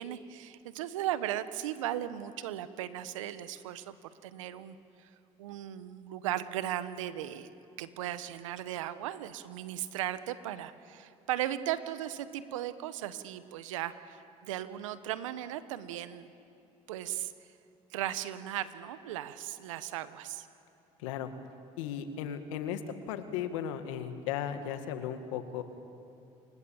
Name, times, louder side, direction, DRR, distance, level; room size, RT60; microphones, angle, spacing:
voice 1, 0.0-4.0 4.2-5.1 5.4-7.5 7.8-16.3 16.9-17.3 17.9-20.5, right 12 dB, 90° right, 13 dB, 1.1 m, -37 dB
voice 2, 21.8-22.8 23.1-25.6, left 9 dB, 85° left, 8 dB, 2.0 m, -36 dB
29.0 x 26.0 x 7.2 m, 2.7 s
hypercardioid pair, 70°, 16 cm